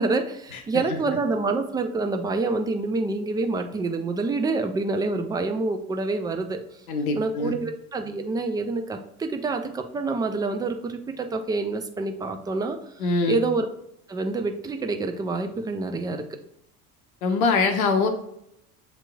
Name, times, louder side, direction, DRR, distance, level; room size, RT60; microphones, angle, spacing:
voice 1, 0.0-6.6 7.2-12.8 13.3-13.7 14.1-16.3, right 3 dB, 10° right, 5 dB, 0.3 m, -27 dB
voice 2, 0.5-1.0 6.9-7.6 13.0-13.4 17.2-18.1, left 4 dB, 70° left, 5 dB, 0.7 m, -24 dB
8.0 x 2.9 x 2.3 m, 0.77 s
figure-of-eight pair, 65°, 44 cm